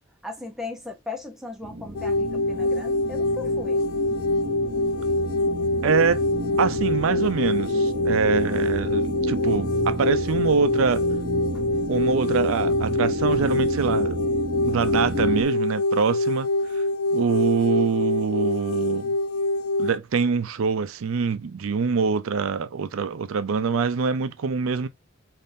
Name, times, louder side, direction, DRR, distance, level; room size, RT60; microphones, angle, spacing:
voice 1, 0.2-3.9, left 3 dB, ahead, 0.7 m, -37 dB
sound 1, 1.6-15.5, right 1 dB, 50° right, 0.8 m, -31 dB
sound 2, 2.0-20.0, left 2 dB, 80° left, 0.3 m, -25 dB
voice 2, 5.8-6.2 6.6-11.0 11.9-14.2 14.6-16.5 16.7-16.8 17.1-19.2 19.8-24.9, right 5 dB, 90° right, 0.4 m, -24 dB
3.5 x 2.6 x 2.6 m
head